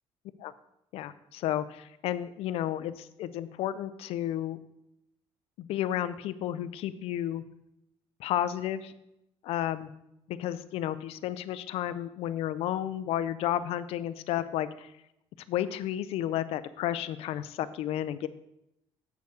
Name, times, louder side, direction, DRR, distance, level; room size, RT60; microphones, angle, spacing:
voice 1, 0.9-4.6 5.6-7.4 8.2-8.9 9.4-9.9 10.3-14.9 15.5-18.3, left 12 dB, 75° left, 14 dB, 0.5 m, -32 dB
8.1 x 7.0 x 4.8 m, 0.84 s
cardioid pair, 170°, 10 cm